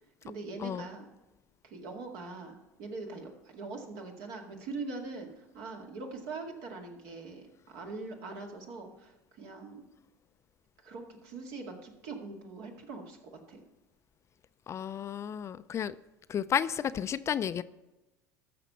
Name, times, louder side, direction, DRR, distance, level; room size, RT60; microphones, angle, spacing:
voice 1, 0.2-1.1 1.6-9.8 10.8-13.2 13.5-13.6, right 3 dB, 60° right, 2 dB, 2.1 m, -42 dB
voice 2, 14.7-16.0 16.3-17.6, left 8 dB, 35° left, 14 dB, 0.4 m, -32 dB
14.0 x 6.0 x 5.7 m, 1.1 s
hypercardioid pair, 75°, 9 cm